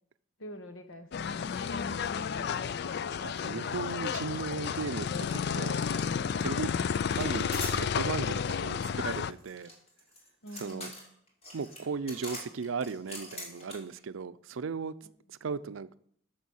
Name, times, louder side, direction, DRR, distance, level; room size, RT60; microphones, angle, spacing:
voice 1, 0.4-2.7 10.4-11.0, left 1 dB, 80° left, 1.2 m, -47 dB
sound 1, 1.1-9.3, left 6 dB, 55° left, 0.3 m, -32 dB
voice 2, 3.2-5.7 6.4-6.8 7.2-9.7 10.5-10.9 11.5-14.9 15.3-16.0, right 5 dB, 75° right, 0.5 m, -36 dB
sound 2, 5.3-5.4 5.7-6.4 7.1-7.8 9.1-14.0, left 1 dB, 30° left, 2.6 m, -44 dB
9.4 x 6.3 x 6.4 m
head